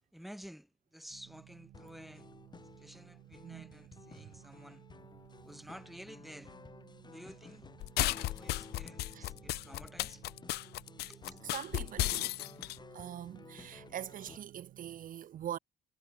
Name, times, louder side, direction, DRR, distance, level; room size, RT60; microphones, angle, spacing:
voice 1, 0.1-2.3 2.8-4.8 5.4-6.5 7.1-7.7 8.0-10.3 11.1-11.4, equal, ahead, 2.2 m, -52 dB
sound 1, 1.1-15.0, right 15 dB, 75° right, 7.0 m, -58 dB
sound 2, 1.7-14.4, left 4 dB, 25° left, 5.4 m, -55 dB
voice 2, 3.4-3.7 9.1-9.3 11.5-12.4 12.9-15.6, right 10 dB, 55° right, 1.4 m, -43 dB
sound 3, 7.8-12.8, left 18 dB, 75° left, 0.5 m, -34 dB
cardioid pair, 110°, 17 cm